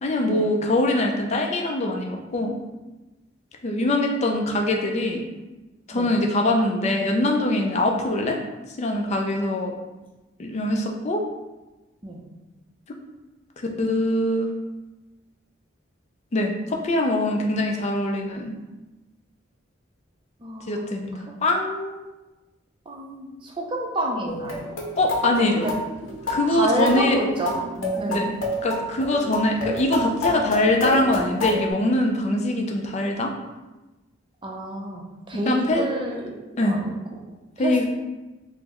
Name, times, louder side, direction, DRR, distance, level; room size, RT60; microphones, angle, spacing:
voice 1, 0.0-2.6 3.6-5.2 5.9-8.4 8.8-9.7 10.4-11.2 13.6-14.5 16.3-18.5 20.7-21.1 21.4-22.0 25.0-25.8 26.3-27.2 28.1-28.3 28.6-33.3 35.5-35.8 36.6-36.8 37.6-37.8, left 1 dB, 35° left, 2 dB, 0.4 m, -23 dB
voice 2, 20.4-20.9 22.9-24.7 25.4-25.7 26.5-27.7 28.0-28.2 34.4-36.9 37.6-37.8, right 1 dB, 25° right, -1 dB, 0.5 m, -29 dB
sound 1, 24.3-31.7, left 1 dB, 80° left, 0.6 m, -29 dB
3.7 x 2.0 x 3.0 m, 1.1 s
head